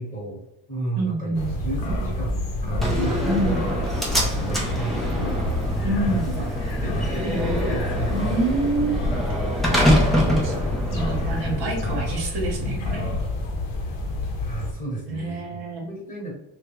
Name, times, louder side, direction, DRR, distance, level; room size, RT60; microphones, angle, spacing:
voice 1, 0.0-3.5 4.0-6.5 6.8-8.2 9.7-10.0 13.8-13.9 14.4-16.3, right 2 dB, 15° left, -5 dB, 1.1 m, -33 dB
voice 2, 1.0-1.6 3.2-3.6 5.8-6.3 8.1-9.0 9.8-10.1 10.4-10.5 10.9-13.1 15.1-15.9, right 2 dB, 55° right, 0 dB, 1.0 m, -27 dB
sound 1, 1.3-14.7, left 1 dB, 60° left, 0.8 m, -28 dB
Slam, 2.8-11.8, equal, ahead, 0.5 m, -25 dB
3.4 x 2.3 x 3.0 m, 0.85 s
cardioid pair, 145°, 47 cm